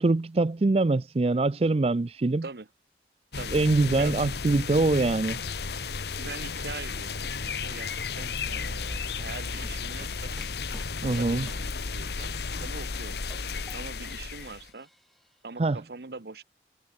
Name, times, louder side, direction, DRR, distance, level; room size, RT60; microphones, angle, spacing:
voice 1, 0.0-2.4 3.5-5.4 11.0-11.5 15.6-15.8, right 2 dB, 35° right, 0.4 m, -24 dB
sound 1, 3.3-14.7, left 4 dB, 65° left, 1.1 m, -34 dB
voice 2, 6.2-10.4 11.0-14.9 15.4-16.4, right 4 dB, 65° right, 1.0 m, -43 dB
sound 2, 9.3-12.2 12.6-14.1 14.4-15.3, equal, ahead, 1.5 m, -48 dB
head